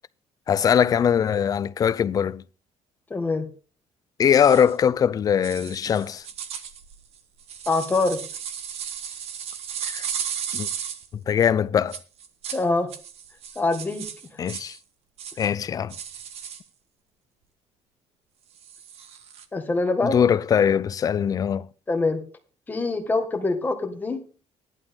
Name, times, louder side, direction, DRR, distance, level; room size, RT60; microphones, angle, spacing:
voice 1, 0.5-2.4 4.2-6.2 9.8-10.1 10.5-10.7 11.3-12.0 14.4-14.8 15.4-15.9 20.0-21.7, left 8 dB, 30° left, 0.5 m, -21 dB
voice 2, 3.1-3.5 7.7-8.2 12.5-12.9 13.6-14.1 19.5-20.2 21.9-22.2 22.7-24.2, left 3 dB, 15° left, 1.7 m, -24 dB
sound 1, 4.3-4.7 5.4-11.1 11.9-12.6 12.9-14.8 15.2-15.5 15.9-16.6 18.6-19.4, right 8 dB, 60° right, 1.4 m, -35 dB
15.0 x 11.0 x 3.7 m
cardioid pair, 170°, 12 cm